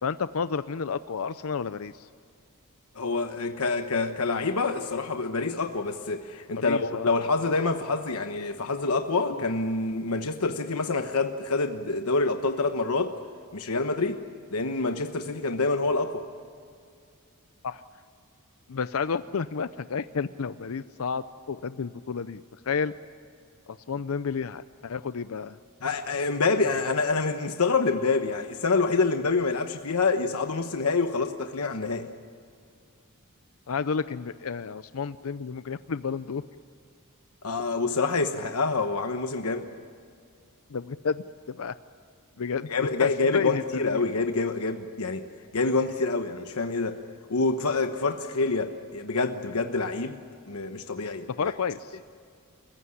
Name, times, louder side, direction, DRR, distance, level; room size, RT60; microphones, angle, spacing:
voice 1, 0.0-2.1 6.5-7.1 9.3-9.4 17.6-17.8 18.7-22.9 23.7-25.6 33.7-36.4 40.7-41.7 42.4-42.7 43.0-44.0 51.4-52.0, left 5 dB, 70° left, 13 dB, 0.6 m, -31 dB
voice 2, 2.9-13.1 13.5-14.2 14.5-16.2 25.8-32.1 37.4-39.7 42.7-45.3 45.5-47.0 47.3-50.2 50.5-51.5, left 3 dB, 85° left, 6 dB, 1.1 m, -27 dB
28.5 x 15.5 x 9.9 m, 2.3 s
head